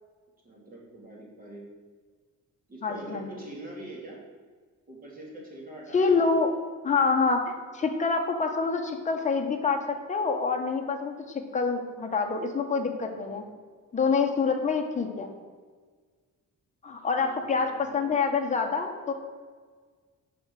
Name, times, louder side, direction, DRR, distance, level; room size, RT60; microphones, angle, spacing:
voice 1, 0.4-1.6 2.7-4.2 4.9-6.3 13.1-13.4 14.2-14.3 17.1-18.2, right 2 dB, 30° right, -3 dB, 2.9 m, -44 dB
voice 2, 2.8-3.4 5.9-6.5 6.8-7.4 7.7-11.2 11.5-13.4 13.9-15.3 16.8-19.1, left 4 dB, 25° left, 3 dB, 1.2 m, -26 dB
11.0 x 4.6 x 7.6 m, 1.5 s
cardioid pair, 175°, 31 cm